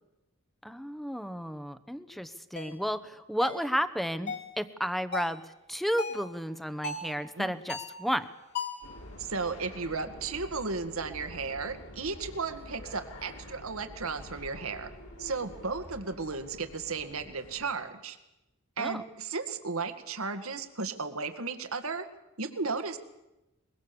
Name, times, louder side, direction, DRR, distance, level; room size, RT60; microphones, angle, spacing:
voice 1, 0.6-5.4 5.7-8.3 18.8-19.0, equal, ahead, 12 dB, 1.0 m, -32 dB
sound 1, 2.6-2.7 3.4-3.7 4.3-4.5 5.1-5.4 6.0-6.3 6.8-7.1 7.7-8.0 8.5-8.9, left 4 dB, 50° left, 3.2 m, -36 dB
sound 2, 8.8-17.7, left 1 dB, 80° left, 5.7 m, -47 dB
voice 2, 9.2-14.9 15.2-18.2 18.8-22.1 22.4-23.0, right 4 dB, 80° right, 8 dB, 1.9 m, -34 dB
23.5 x 22.5 x 7.0 m, 0.95 s
head